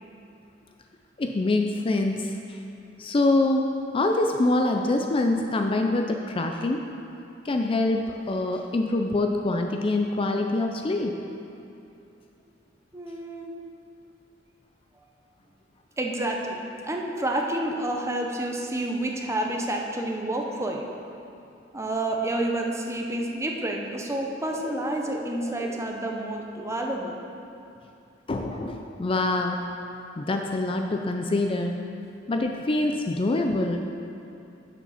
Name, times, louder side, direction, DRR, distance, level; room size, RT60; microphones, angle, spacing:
voice 1, 1.2-2.3 3.0-3.7 3.9-6.8 7.4-11.2 24.5-24.7 25.1-25.7 28.3-29.7 30.2-31.8 32.3-33.8, left 2 dB, 30° left, 3 dB, 0.4 m, -25 dB
voice 2, 12.9-13.5 16.0-20.9 21.7-27.2, right 1 dB, 15° right, 1 dB, 0.7 m, -29 dB
7.2 x 6.9 x 5.7 m, 2.6 s
head